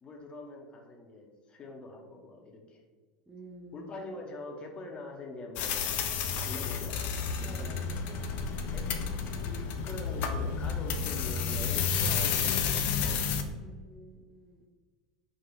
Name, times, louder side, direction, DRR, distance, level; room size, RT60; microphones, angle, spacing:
voice 1, 0.0-2.8 3.7-5.8 6.3-7.0 7.4-8.9 9.8-13.2, left 2 dB, 30° left, 1 dB, 0.8 m, -44 dB
voice 2, 3.3-3.8 7.4-7.8 9.3-9.9 13.6-14.6, right 2 dB, 5° right, -1 dB, 0.6 m, -50 dB
sound 1, 5.6-13.4, left 6 dB, 50° left, 0.4 m, -31 dB
4.4 x 2.3 x 4.5 m, 1.5 s
figure-of-eight pair, 75°, 4 cm